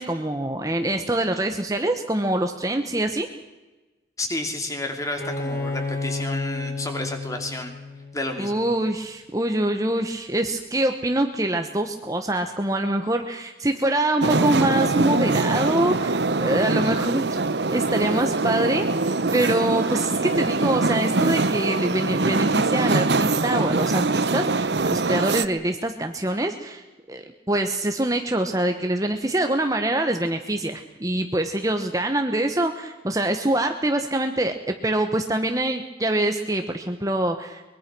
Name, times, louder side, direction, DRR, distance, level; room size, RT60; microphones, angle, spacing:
voice 1, 0.0-3.3 8.4-17.4 17.7-18.9 19.3-37.6, right 1 dB, 20° right, 6 dB, 1.2 m, -25 dB
voice 2, 4.2-7.7 8.1-8.6, left 2 dB, 15° left, 5 dB, 2.8 m, -31 dB
Bowed string instrument, 5.2-8.8, left 3 dB, 50° left, 4.1 m, -31 dB
sound 1, 14.2-25.5, right 3 dB, 65° right, 0.9 m, -23 dB
23.5 x 22.0 x 6.2 m, 1.2 s
head